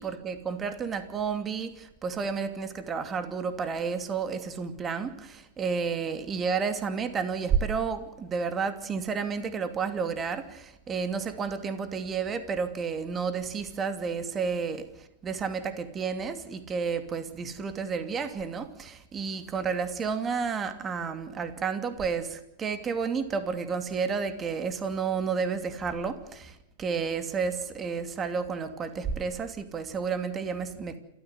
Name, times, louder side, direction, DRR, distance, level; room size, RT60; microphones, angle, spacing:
voice 1, 0.0-31.0, right 5 dB, 25° right, 9 dB, 2.7 m, -31 dB
28.5 x 14.5 x 8.1 m, 0.86 s
hypercardioid pair, 105°, 0 cm